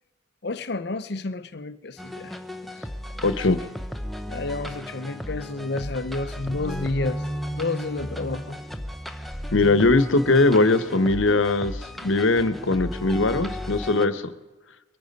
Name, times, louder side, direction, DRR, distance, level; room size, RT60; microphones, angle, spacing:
voice 1, 0.4-2.4 4.3-7.2 7.5-8.6, left 2 dB, 55° left, 0.7 m, -30 dB
sound 1, 2.0-14.1, equal, ahead, 0.7 m, -35 dB
voice 2, 3.2-3.6 9.5-14.2, left 2 dB, 85° left, 1.1 m, -20 dB
23.0 x 9.6 x 5.3 m
head